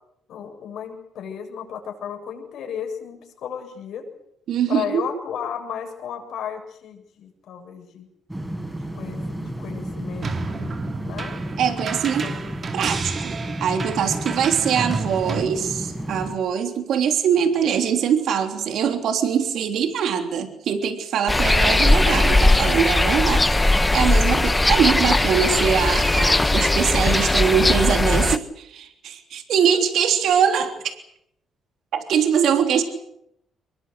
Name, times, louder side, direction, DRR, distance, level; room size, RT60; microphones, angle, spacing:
voice 1, 0.3-4.1 4.7-8.1 8.9-11.4 12.2-12.5 14.3-14.4, left 8 dB, 75° left, 3 dB, 7.4 m, -34 dB
voice 2, 4.5-5.0 11.6-12.2 12.7-30.9 31.9-32.8, right 8 dB, 75° right, 6 dB, 3.4 m, -22 dB
sound 1, 8.3-16.3, right 1 dB, 10° right, 5.4 m, -32 dB
sound 2, 10.2-15.4, right 4 dB, 40° right, 2.3 m, -32 dB
sound 3, 21.3-28.4, left 2 dB, 15° left, 1.2 m, -19 dB
24.5 x 21.5 x 8.1 m, 0.76 s
cardioid pair, 90°, 0 cm